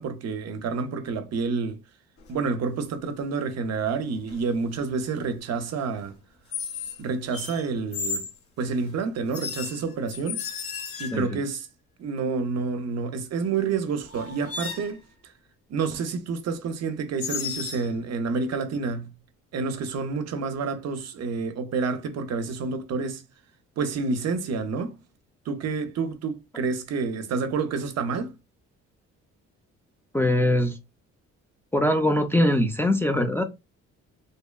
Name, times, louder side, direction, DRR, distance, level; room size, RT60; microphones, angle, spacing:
voice 1, 0.0-1.8 2.3-6.2 7.0-8.3 8.6-10.6 11.0-11.7 12.0-15.0 15.7-19.1 19.5-23.2 23.8-25.0 25.5-28.3, right 4 dB, 60° right, 0.5 m, -29 dB
sound 1, 2.2-2.5 4.3-4.6 6.5-7.0 7.3-8.4 9.3-11.4 13.5-13.6 14.1-15.0 17.2-17.9, left 6 dB, 50° left, 0.8 m, -34 dB
voice 2, 11.1-11.4 30.1-30.8 31.7-33.4, left 1 dB, 10° left, 0.4 m, -22 dB
2.7 x 2.1 x 2.2 m
cardioid pair, 90°, 30 cm